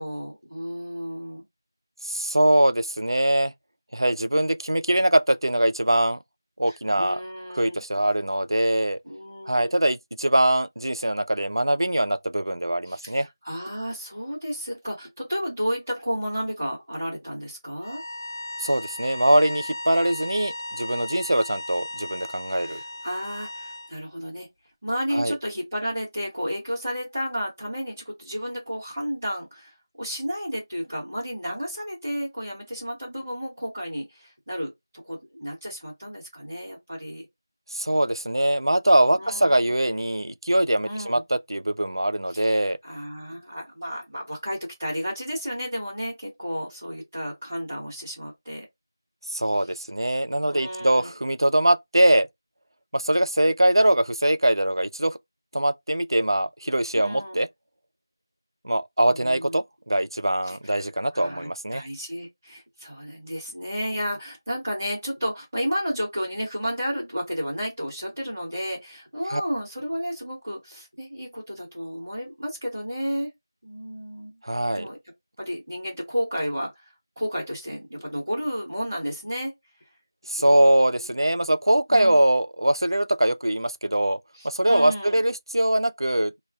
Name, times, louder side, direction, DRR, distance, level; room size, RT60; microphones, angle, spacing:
voice 1, 0.0-1.5 6.7-7.8 9.0-9.7 12.8-18.0 22.6-24.5 24.8-37.3 39.1-39.7 40.8-41.2 42.3-48.7 50.5-51.1 56.9-57.4 59.1-59.6 60.4-73.3 73.6-74.3 74.7-75.0 75.4-79.5 80.4-81.1 81.9-82.2 84.3-85.2, equal, 5° right, 0.6 m, -32 dB
voice 2, 2.0-3.5 3.9-6.2 6.6-7.2 7.5-9.0 9.5-13.3 18.6-22.8 25.1-25.3 37.7-42.8 49.3-52.3 52.9-55.2 55.5-57.5 58.6-61.8 69.3-69.4 74.4-74.9 80.3-84.2 84.4-86.4, right 1 dB, 85° right, 0.3 m, -22 dB
sound 1, 17.8-23.9, left 1 dB, 55° left, 0.8 m, -36 dB
2.3 x 2.2 x 3.3 m
figure-of-eight pair, 180°, 2 cm